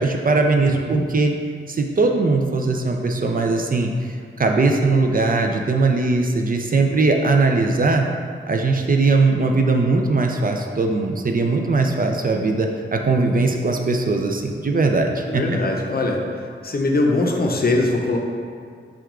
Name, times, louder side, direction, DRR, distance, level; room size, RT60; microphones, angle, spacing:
voice 1, 0.0-1.3 1.7-8.1 8.5-15.4, right 3 dB, 45° right, 2 dB, 0.4 m, -20 dB
voice 2, 0.6-1.0 15.3-16.2 16.6-18.2, left 2 dB, 50° left, 1 dB, 0.6 m, -21 dB
6.1 x 2.3 x 3.6 m, 2.2 s
wide cardioid pair, 65°, 20 cm